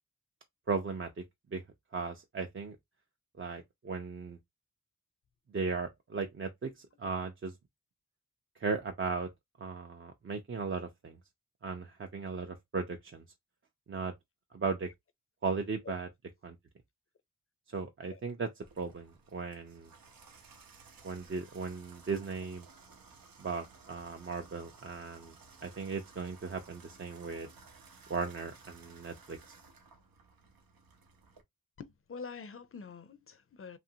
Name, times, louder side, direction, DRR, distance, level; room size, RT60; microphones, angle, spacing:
voice 1, 0.7-1.1 1.5-1.6 1.9-2.8 3.4-4.4 5.5-7.5 8.6-9.3 9.6-11.2 11.6-13.2 13.9-14.1 14.5-14.9 15.4-16.1 16.4-16.6 17.7-18.5 18.8-19.9 21.0-22.7 23.4-25.3 25.6-27.5 28.1-29.4, right 4 dB, 40° right, 0.5 m, -36 dB
Water tap faucet / Bathtub (filling or washing), 18.6-31.4, right 4 dB, 90° right, 0.7 m, -57 dB
voice 2, 31.8-33.8, left 5 dB, 40° left, 0.5 m, -45 dB
2.8 x 2.5 x 2.7 m
wide cardioid pair, 85°, 34 cm